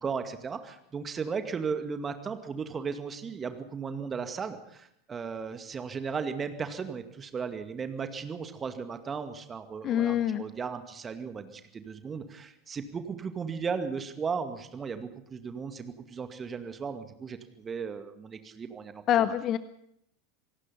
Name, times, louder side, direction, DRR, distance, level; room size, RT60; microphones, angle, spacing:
voice 1, 0.0-19.3, right 5 dB, 25° right, 9 dB, 2.2 m, -36 dB
voice 2, 9.8-10.4 19.1-19.6, left 11 dB, 35° left, 15 dB, 0.8 m, -25 dB
26.5 x 17.5 x 5.7 m, 0.73 s
figure-of-eight pair, 80°, 0 cm